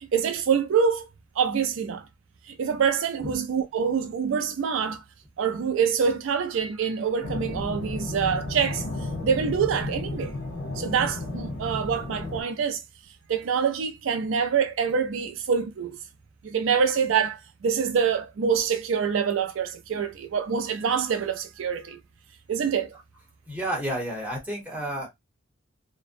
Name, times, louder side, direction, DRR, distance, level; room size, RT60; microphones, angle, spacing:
voice 1, 0.1-1.0 1.4-2.1 2.5-5.0 5.4-8.8 9.2-10.3 10.8-12.8 13.3-16.0 16.4-22.0 22.5-22.9, right 6 dB, 70° right, 0.4 m, -25 dB
sound 1, 7.2-12.4, left 2 dB, 80° left, 0.8 m, -33 dB
voice 2, 23.5-25.1, right 1 dB, 5° right, 0.9 m, -31 dB
2.5 x 2.1 x 2.5 m
head